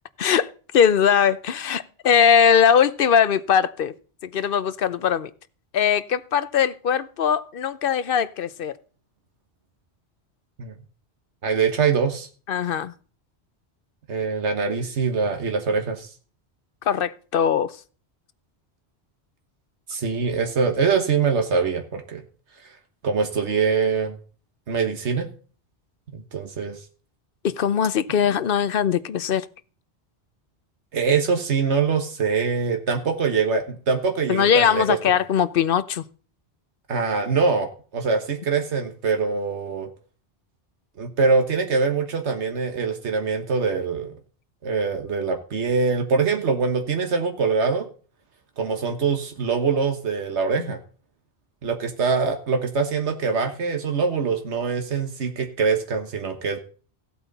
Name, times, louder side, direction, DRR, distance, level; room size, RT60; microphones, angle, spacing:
voice 1, 0.2-3.9 4.2-5.3 5.7-8.7 12.5-12.9 16.9-17.7 27.4-29.5 34.3-36.0, left 8 dB, 60° left, 0.8 m, -20 dB
voice 2, 11.4-12.3 14.1-16.1 19.9-22.2 23.0-24.1 24.7-25.3 26.1-26.8 30.9-35.0 36.9-39.9 41.0-44.1 44.6-47.9 48.6-50.8 51.6-56.6, right 5 dB, 90° right, 1.6 m, -23 dB
15.5 x 8.3 x 4.0 m
omnidirectional pair, 1.1 m